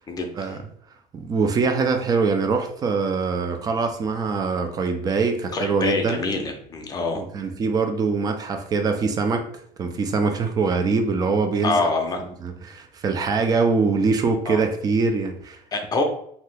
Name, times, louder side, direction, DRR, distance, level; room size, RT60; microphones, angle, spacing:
voice 1, 0.1-0.6 5.5-7.2 11.6-12.2 14.5-14.6 15.7-16.0, left 3 dB, 25° left, 3 dB, 0.5 m, -25 dB
voice 2, 1.1-6.2 7.1-9.5 9.8-11.9 12.4-15.6, right 4 dB, 25° right, 6 dB, 0.4 m, -23 dB
2.8 x 2.3 x 3.3 m, 0.69 s
cardioid pair, 140°, 15 cm